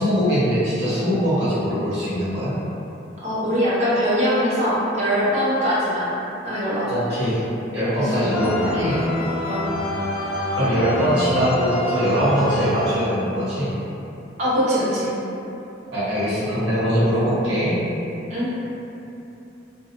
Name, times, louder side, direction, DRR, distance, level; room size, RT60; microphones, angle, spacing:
voice 1, 0.0-2.5 6.9-7.4 7.7-9.0 10.5-13.7 15.9-17.8, equal, 60° right, -12 dB, 1.0 m, -22 dB
voice 2, 3.2-6.2 6.4-6.9 8.0-8.3 9.5-9.7 14.4-15.1 18.3-18.5, equal, 35° right, -9 dB, 0.7 m, -22 dB
sound 1, 8.3-13.5, left 1 dB, 90° left, 0.3 m, -26 dB
2.6 x 2.2 x 2.7 m, 2.9 s
head